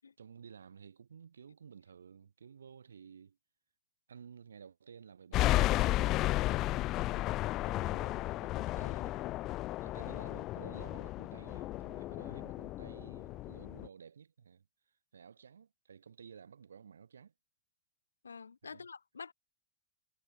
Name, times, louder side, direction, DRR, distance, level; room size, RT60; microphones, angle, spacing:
voice 1, 0.2-3.4 4.1-6.5 6.9-7.0 7.6-9.4 9.8-14.7 15.1-17.3 18.6-18.9, right 7 dB, 70° right, 4.9 m, -54 dB
sound 1, 5.3-13.9, left 16 dB, 35° left, 0.5 m, -33 dB
voice 2, 7.1-7.4 18.2-19.3, left 5 dB, 75° left, 3.1 m, -48 dB
figure-of-eight pair, 90°, 0 cm